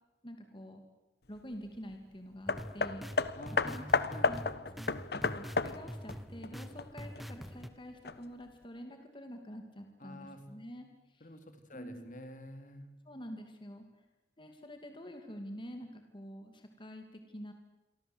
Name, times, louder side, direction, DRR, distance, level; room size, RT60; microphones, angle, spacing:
voice 1, 0.2-0.8 1.3-3.3 3.6-3.9 4.3-4.4 4.8-11.3 11.7-12.1 13.1-13.8 14.4-17.5, equal, 30° left, 5 dB, 2.6 m, -47 dB
Hammer, 2.5-7.2 8.0-8.1, left 4 dB, 65° left, 1.2 m, -33 dB
sound 1, 2.5-7.7, equal, ahead, 1.3 m, -45 dB
voice 2, 3.4-4.4 10.0-10.4 11.2-12.9, left 1 dB, 50° left, 7 dB, 3.2 m, -48 dB
28.0 x 24.0 x 8.1 m, 1.1 s
head